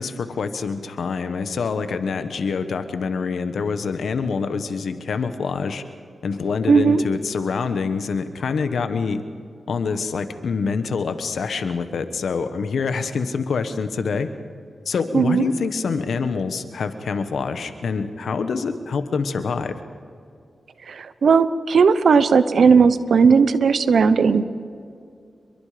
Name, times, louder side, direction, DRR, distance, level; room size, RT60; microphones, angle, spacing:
voice 1, 0.0-5.8 6.2-9.2 9.7-14.3 14.8-19.7, left 5 dB, 85° left, 9 dB, 1.4 m, -25 dB
voice 2, 6.7-7.0 15.1-15.5 21.2-24.4, right 5 dB, 80° right, 13 dB, 1.0 m, -16 dB
28.5 x 22.5 x 5.2 m, 2.4 s
cardioid pair, 65°, 0 cm